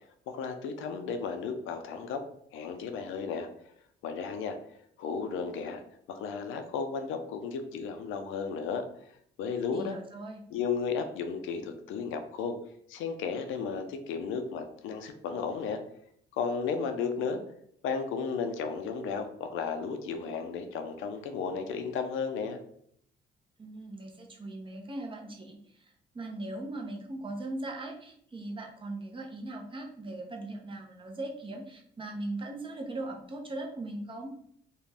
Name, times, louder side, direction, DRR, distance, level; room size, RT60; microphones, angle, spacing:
voice 1, 0.3-2.2 2.5-3.5 4.0-4.6 5.0-5.8 6.1-8.8 9.4-10.0 10.5-12.6 12.9-15.8 16.4-17.4 17.8-22.6, left 5 dB, 85° left, 7 dB, 0.4 m, -34 dB
voice 2, 9.7-10.4 23.6-34.3, right 2 dB, 25° right, 1 dB, 0.6 m, -39 dB
2.5 x 2.2 x 3.3 m, 0.67 s
cardioid pair, 90°, 20 cm